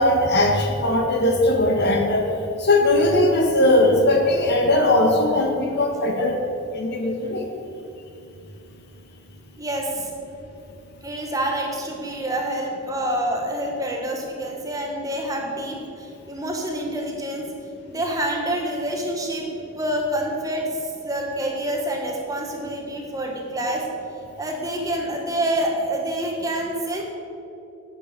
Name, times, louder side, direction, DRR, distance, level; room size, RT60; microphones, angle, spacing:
voice 1, 0.0-2.3 2.6-6.4 6.7-7.5, left 1 dB, 50° left, 2 dB, 1.5 m, -19 dB
voice 2, 9.6-10.1 11.0-17.5 17.9-19.5 19.7-23.8 24.4-27.0, right 1 dB, 15° right, 0 dB, 1.4 m, -27 dB
9.7 x 8.9 x 6.9 m, 2.7 s
head